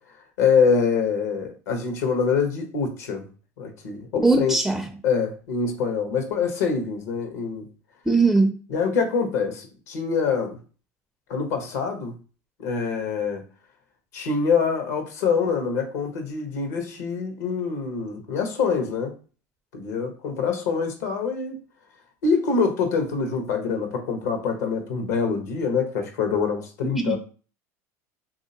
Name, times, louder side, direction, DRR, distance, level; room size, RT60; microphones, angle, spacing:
voice 1, 0.4-3.3 3.6-4.6 5.0-7.7 8.7-10.6 11.3-12.1 12.6-13.4 14.1-19.1 19.7-21.5 22.2-27.2, left 5 dB, 80° left, 5 dB, 1.1 m, -25 dB
voice 2, 4.2-4.9 8.1-8.6 26.8-27.2, right 3 dB, ahead, 6 dB, 0.4 m, -20 dB
3.3 x 2.7 x 2.8 m, 0.37 s
hypercardioid pair, 95°, 8 cm